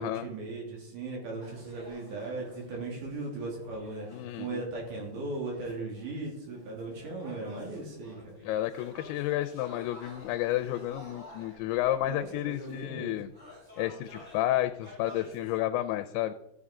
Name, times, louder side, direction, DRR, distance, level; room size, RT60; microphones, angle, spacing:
voice 1, 0.0-4.1 4.4-8.4 12.0-13.2, right 2 dB, 55° right, -1 dB, 3.8 m, -38 dB
sound 1, 1.4-15.6, left 1 dB, 20° right, 4.1 m, -52 dB
voice 2, 4.1-4.6 8.4-13.3 13.8-16.3, left 14 dB, 85° left, 9 dB, 2.6 m, -31 dB
14.0 x 6.9 x 3.7 m, 0.87 s
omnidirectional pair, 4.6 m